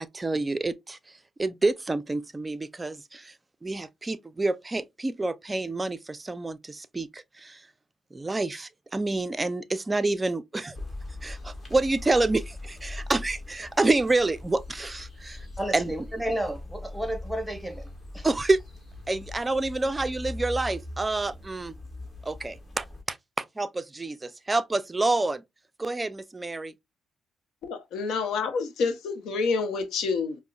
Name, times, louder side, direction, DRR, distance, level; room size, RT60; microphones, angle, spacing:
voice 1, 0.0-3.3 3.6-7.7 8.1-10.8 11.2-15.5 15.7-15.9 18.2-18.6 19.1-21.7 22.2-25.4 25.8-26.7, right 2 dB, 20° right, 0.4 m, -28 dB
sound 1, 10.7-23.0, left 2 dB, 30° left, 1.5 m, -41 dB
voice 2, 15.6-18.3, right 1 dB, ahead, 0.9 m, -32 dB
voice 3, 27.6-30.4, left 4 dB, 80° left, 0.7 m, -28 dB
4.9 x 2.0 x 2.2 m
cardioid pair, 90°, 0 cm